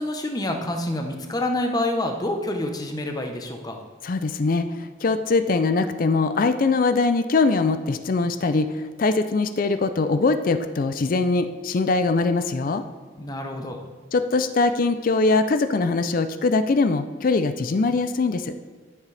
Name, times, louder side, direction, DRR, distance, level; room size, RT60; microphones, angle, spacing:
voice 1, 0.0-3.8 13.2-13.8, left 1 dB, 20° left, 4 dB, 0.8 m, -27 dB
voice 2, 4.0-4.7 5.0-8.7 9.0-12.8 14.1-18.5, left 3 dB, 45° left, 10 dB, 0.4 m, -22 dB
13.0 x 7.4 x 3.3 m, 1.5 s
head